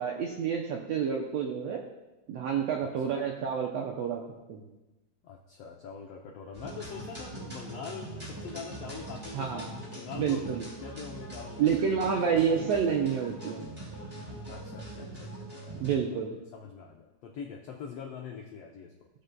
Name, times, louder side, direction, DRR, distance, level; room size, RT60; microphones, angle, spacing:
voice 1, 0.0-1.8 2.3-4.2 4.5-4.6 9.3-9.7 10.1-10.6 11.6-13.6 15.7-16.4, right 7 dB, 80° right, 1 dB, 1.5 m, -29 dB
voice 2, 2.8-3.2 5.2-10.5 10.8-12.8 14.4-16.2 16.5-19.1, left 6 dB, 85° left, 1 dB, 1.3 m, -44 dB
sound 1, 6.5-16.0, right 1 dB, 10° right, 2.5 m, -42 dB
15.5 x 6.7 x 2.2 m, 1.0 s
omnidirectional pair, 3.7 m